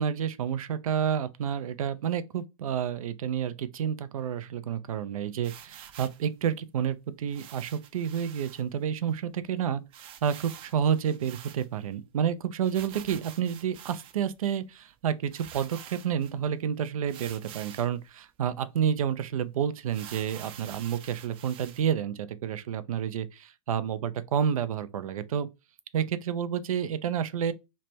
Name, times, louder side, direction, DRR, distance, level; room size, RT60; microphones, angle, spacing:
voice 1, 0.0-25.5 25.9-27.5, right 8 dB, 85° right, 0.5 m, -30 dB
sound 1, 5.4-6.2 7.3-8.6 9.1-9.2 9.4-9.5 9.9-11.9 12.6-14.3 14.9-15.0 15.3-16.3 17.1-18.0 18.5-18.6 19.0-19.1 19.9-21.8, right 10 dB, 30° right, 0.4 m, -47 dB
3.2 x 2.1 x 4.2 m
hypercardioid pair, 125°, 18 cm